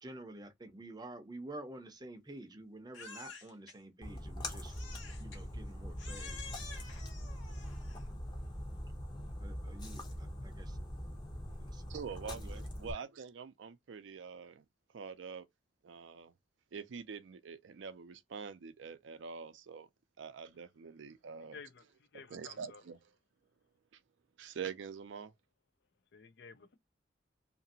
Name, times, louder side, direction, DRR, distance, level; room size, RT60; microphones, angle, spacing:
voice 1, 0.0-4.7 5.2-6.4 9.4-10.8 11.6-11.8 12.8-13.0, right 1 dB, 20° right, 0.6 m, -49 dB
Crying sobbing, 2.9-3.8 4.7-5.4 6.0-8.1, left 5 dB, 80° left, 1.1 m, -50 dB
Splash splatter, 4.0-12.9, equal, 25° left, 0.7 m, -42 dB
voice 2, 11.9-14.6 14.9-15.5 15.8-16.3 16.7-19.9 20.2-21.6 22.3-23.0 24.4-25.3, right 6 dB, 75° right, 0.4 m, -45 dB
voice 3, 21.5-21.8 22.1-22.8 26.1-26.8, left 5 dB, 65° left, 0.5 m, -52 dB
2.8 x 2.6 x 2.6 m
head